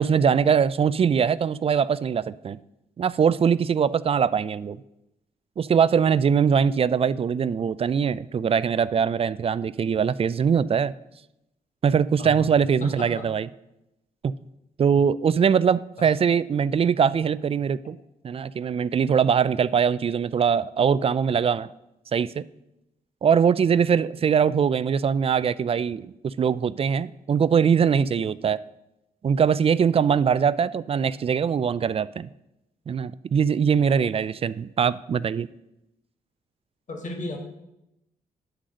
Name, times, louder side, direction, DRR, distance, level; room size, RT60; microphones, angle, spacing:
voice 1, 0.0-2.6 3.0-4.8 5.6-10.9 11.8-13.5 14.2-14.3 14.8-18.0 18.2-21.7 22.1-22.4 23.2-28.6 29.2-32.3 32.9-35.5, right 7 dB, 40° right, 18 dB, 0.3 m, -22 dB
voice 2, 12.8-13.3 16.0-16.1 36.9-37.4, left 1 dB, 55° left, 3 dB, 1.7 m, -34 dB
10.0 x 3.8 x 6.3 m, 0.88 s
cardioid pair, 60°, 15 cm